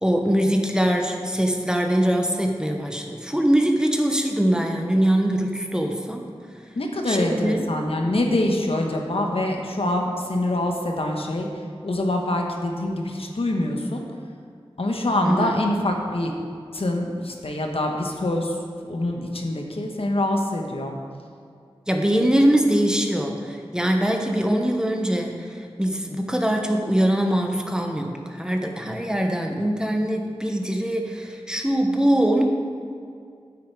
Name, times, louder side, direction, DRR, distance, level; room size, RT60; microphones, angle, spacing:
voice 1, 0.0-6.3 7.0-7.7 15.2-15.6 21.9-32.4, right 1 dB, 5° right, 2 dB, 1.0 m, -22 dB
voice 2, 6.7-11.5 11.8-14.0 14.8-16.3 16.7-18.5 18.9-20.9, left 1 dB, 65° left, 2 dB, 1.2 m, -25 dB
8.8 x 8.5 x 4.7 m, 2.3 s
wide cardioid pair, 60°, 10 cm